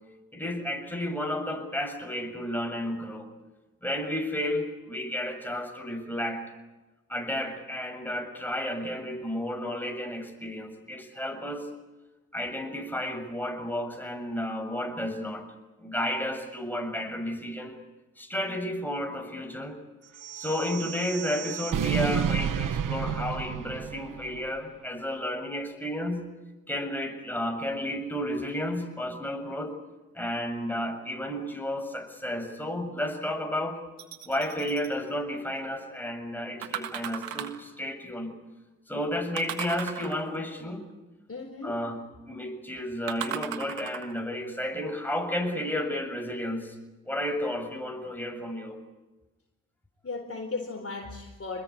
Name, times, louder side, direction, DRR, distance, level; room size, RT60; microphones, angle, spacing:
voice 1, 0.3-3.3 3.8-6.4 7.1-11.7 12.3-15.4 15.8-17.8 18.2-19.8 20.4-26.3 26.7-29.8 30.1-33.8 34.2-38.3 38.9-40.9 41.6-42.0 42.3-46.7 47.1-48.8, left 1 dB, 5° left, 4 dB, 7.4 m, -32 dB
sound 1, 20.1-24.5, right 8 dB, 70° right, 1.2 m, -31 dB
sound 2, 34.0-34.9 36.6-37.7 39.4-40.5 43.1-44.2 44.9-45.0, right 10 dB, 90° right, 1.6 m, -37 dB
voice 2, 41.3-41.8 50.0-51.6, left 3 dB, 40° left, 3 dB, 4.2 m, -36 dB
27.0 x 21.0 x 8.8 m, 1.1 s
supercardioid pair, 45°, 34 cm